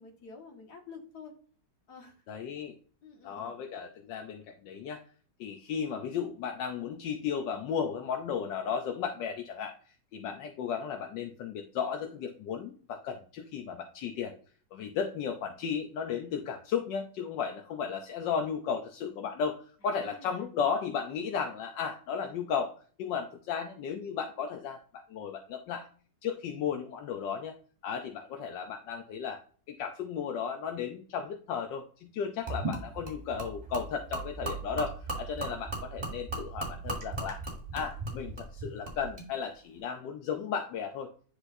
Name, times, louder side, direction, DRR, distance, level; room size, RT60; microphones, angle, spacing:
voice 1, 0.0-1.3 1.9-2.2 3.0-3.6 19.8-20.4, left 5 dB, 65° left, 0 dB, 2.2 m, -49 dB
voice 2, 2.3-2.7 3.2-5.0 5.4-9.7 10.1-14.3 14.7-22.7 23.0-25.9 26.2-27.5 27.8-29.4 29.7-37.4 37.7-41.1, left 7 dB, 85° left, 4 dB, 1.4 m, -34 dB
Gurgling / Liquid, 32.5-39.3, right 2 dB, 20° right, 2.8 m, -37 dB
9.7 x 4.3 x 2.6 m, 0.43 s
omnidirectional pair, 1.9 m